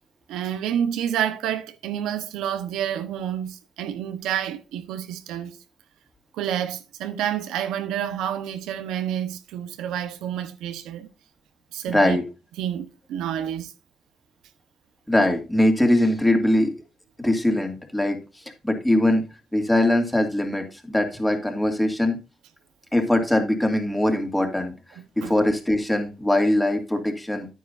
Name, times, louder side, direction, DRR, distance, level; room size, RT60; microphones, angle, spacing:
voice 1, 0.3-5.6 6.3-11.1 11.7-12.2 12.6-13.7 25.2-25.3, right 10 dB, 90° right, 1.0 m, -29 dB
voice 2, 11.9-12.2 15.1-16.7 17.2-19.2 19.5-22.2 22.9-24.7 25.2-27.5, left 1 dB, 10° left, 2.3 m, -22 dB
10.5 x 9.4 x 2.6 m
cardioid pair, 90°, 0 cm